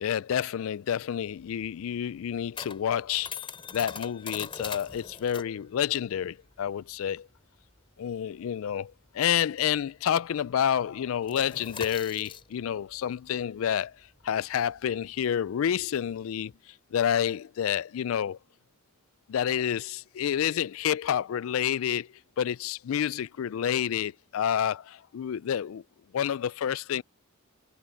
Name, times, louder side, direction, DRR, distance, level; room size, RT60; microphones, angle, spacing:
voice 1, 0.0-3.4 3.7-7.3 8.0-14.0 14.2-18.4 19.3-22.1 22.4-25.8 26.1-27.0, left 9 dB, 65° left, 0.3 m, -29 dB
sound 1, 1.0-10.0 10.3-10.5 10.8-16.6, left 5 dB, 25° left, 3.0 m, -43 dB
head